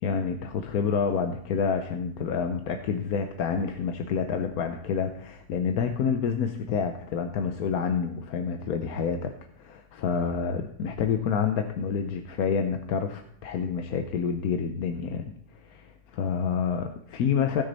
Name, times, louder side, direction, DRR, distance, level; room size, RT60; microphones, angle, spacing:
voice 1, 0.0-17.6, left 6 dB, 70° left, 6 dB, 1.1 m, -28 dB
17.0 x 6.5 x 4.1 m, 0.67 s
omnidirectional pair, 1.8 m